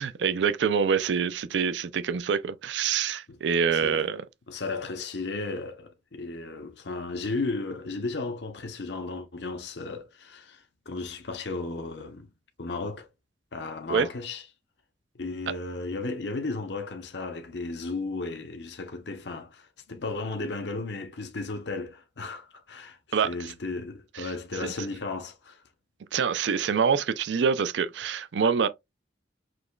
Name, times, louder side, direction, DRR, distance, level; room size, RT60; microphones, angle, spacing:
voice 1, 0.0-4.2 13.9-14.1 23.1-23.3 24.1-24.3 24.6-24.7 26.1-28.7, right 6 dB, 85° right, 0.4 m, -26 dB
voice 2, 3.7-4.1 4.5-12.3 12.6-13.1 13.5-14.4 15.1-25.6, left 3 dB, 75° left, 0.8 m, -35 dB
6.1 x 2.9 x 2.3 m
head